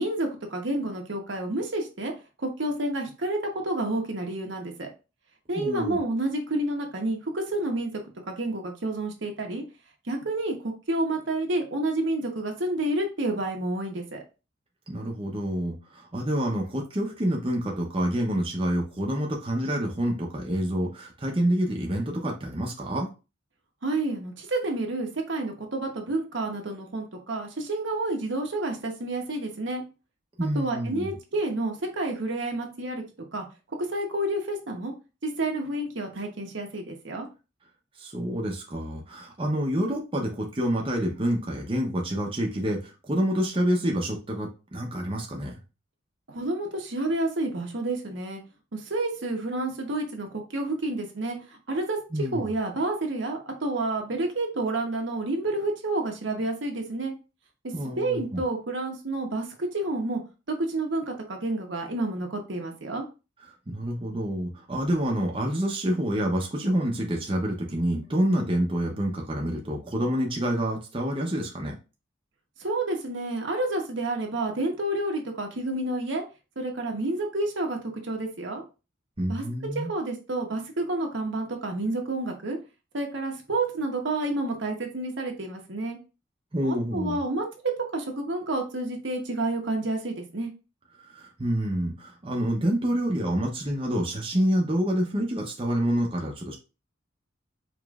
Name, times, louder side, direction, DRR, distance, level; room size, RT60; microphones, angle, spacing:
voice 1, 0.0-2.1 2.4-4.9 5.5-9.6 10.1-14.2 23.8-29.8 30.5-33.0 33.3-33.4 33.8-34.9 35.2-37.3 46.3-48.4 48.7-57.1 58.0-60.2 60.5-63.1 72.6-76.2 76.6-78.6 79.3-79.4 79.7-82.6 82.9-86.0 86.6-87.5 87.9-90.5, right 2 dB, 70° right, 2 dB, 1.0 m, -29 dB
voice 2, 5.6-6.0 14.9-23.1 30.4-31.1 38.0-45.6 52.1-52.4 57.7-58.4 63.7-71.7 79.2-79.9 86.5-87.2 91.0-96.5, equal, 30° right, -1 dB, 0.8 m, -27 dB
4.9 x 3.1 x 2.4 m, 0.30 s
head